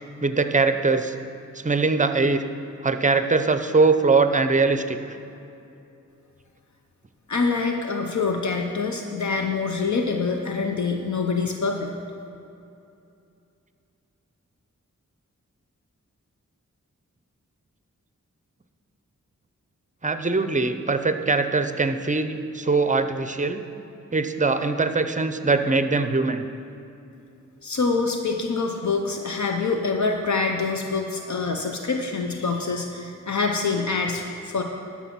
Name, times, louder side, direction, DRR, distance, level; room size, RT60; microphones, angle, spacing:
voice 1, 0.2-1.1 1.5-2.4 2.8-5.2 20.0-23.6 24.1-26.5, right 3 dB, 25° right, 9 dB, 0.6 m, -22 dB
voice 2, 7.3-11.9 27.6-34.6, left 4 dB, 65° left, 3 dB, 0.7 m, -25 dB
12.0 x 6.0 x 5.9 m, 2.7 s
wide cardioid pair, 60°, 31 cm